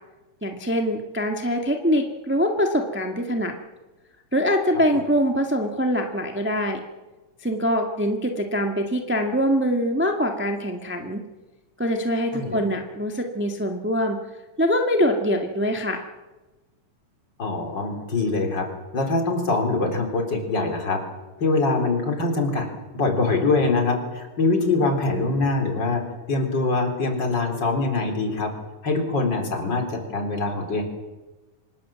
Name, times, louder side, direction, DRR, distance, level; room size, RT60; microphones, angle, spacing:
voice 1, 0.4-3.5 4.3-6.8 7.4-11.2 11.8-14.2 14.6-16.0, equal, 10° right, 3 dB, 0.7 m, -23 dB
voice 2, 17.4-18.7 18.9-21.0 21.4-22.7 22.9-26.0 26.3-28.5 28.8-30.8, left 3 dB, 35° left, 3 dB, 4.3 m, -23 dB
25.5 x 19.5 x 7.6 m, 1.2 s
omnidirectional pair, 3.7 m